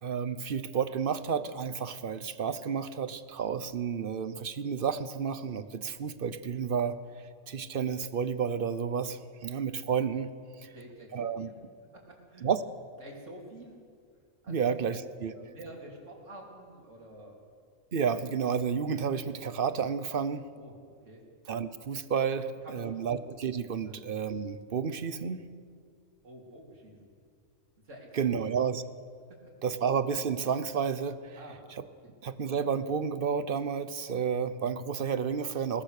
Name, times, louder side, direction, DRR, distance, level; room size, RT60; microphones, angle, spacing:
voice 1, 0.0-7.0 7.5-10.3 10.6-10.7 11.1-11.5 12.4-12.6 14.5-15.3 17.9-20.5 21.5-25.4 28.1-28.8 29.6-31.4 32.2-35.8, right 6 dB, 45° right, 13 dB, 1.0 m, -31 dB
voice 2, 10.7-11.6 11.9-12.5 13.0-13.8 14.4-15.0 15.3-17.4 20.6-21.2 22.3-23.1 23.8-24.0 26.2-27.1 27.8-28.6 29.4-29.5 31.4-31.6, right 1 dB, 70° right, -1 dB, 3.9 m, -49 dB
22.0 x 18.5 x 6.6 m, 2.1 s
omnidirectional pair, 1.3 m